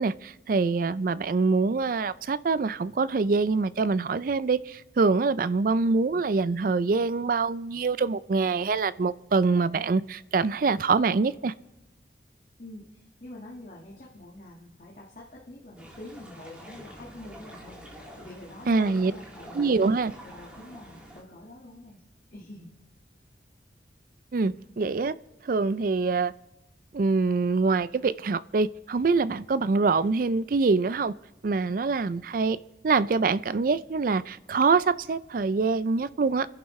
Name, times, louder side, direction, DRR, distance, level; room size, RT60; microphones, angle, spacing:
voice 1, 0.0-11.5 18.7-19.1 19.5-20.1 24.3-25.1 25.5-26.3 26.9-31.1 31.4-32.6 32.8-36.5, right 4 dB, 50° right, 17 dB, 0.4 m, -25 dB
voice 2, 12.6-12.9 13.2-17.8 18.2-19.7 20.2-22.0 22.3-22.8, left 1 dB, 45° left, -4 dB, 1.7 m, -46 dB
sound 1, 15.8-21.2, equal, 5° right, 2.3 m, -46 dB
29.5 x 11.0 x 3.2 m, 0.96 s
head